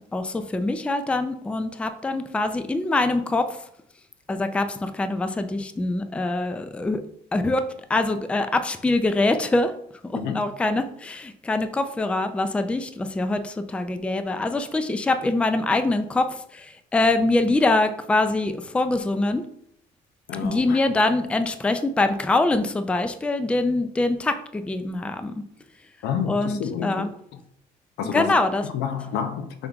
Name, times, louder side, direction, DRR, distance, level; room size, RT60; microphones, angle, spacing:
voice 1, 0.1-3.6 4.3-7.0 7.3-7.6 7.9-9.7 10.0-19.4 20.4-25.4 26.3-27.1 28.0-28.6, left 2 dB, 5° left, 9 dB, 0.3 m, -24 dB
voice 2, 20.3-20.8 26.0-27.1 28.0-28.3 28.7-29.7, left 7 dB, 85° left, 8 dB, 0.6 m, -29 dB
5.3 x 3.5 x 2.3 m, 0.70 s
cardioid pair, 110°, 17 cm